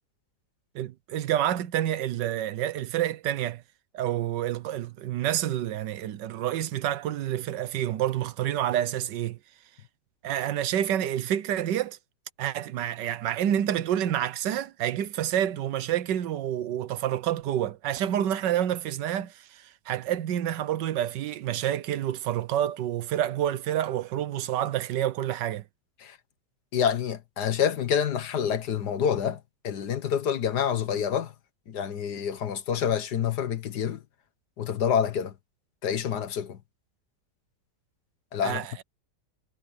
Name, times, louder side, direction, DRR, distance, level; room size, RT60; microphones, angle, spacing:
voice 1, 0.7-3.6 3.9-9.4 10.2-12.0 12.4-25.6 38.4-38.7, right 11 dB, 85° right, 1.5 m, -28 dB
voice 2, 26.7-29.4 29.6-31.3 31.7-34.0 34.6-35.3 35.8-36.6 38.3-38.6, left 8 dB, 70° left, 1.7 m, -27 dB
omnidirectional pair, 1.9 m